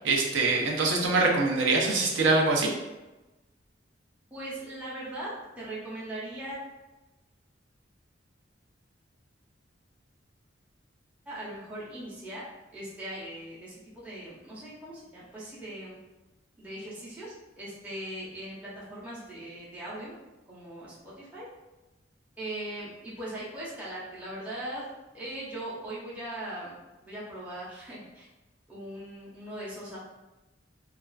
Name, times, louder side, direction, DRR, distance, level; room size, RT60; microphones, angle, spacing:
voice 1, 0.0-2.7, right 3 dB, 70° right, -1 dB, 0.5 m, -24 dB
voice 2, 4.3-6.6 11.3-12.4 12.7-16.0 16.6-20.1 20.5-21.5 22.4-24.8 25.1-26.8 27.0-28.3 28.7-30.0, right 1 dB, 10° right, -9 dB, 0.6 m, -39 dB
2.3 x 2.3 x 2.2 m, 1.1 s
head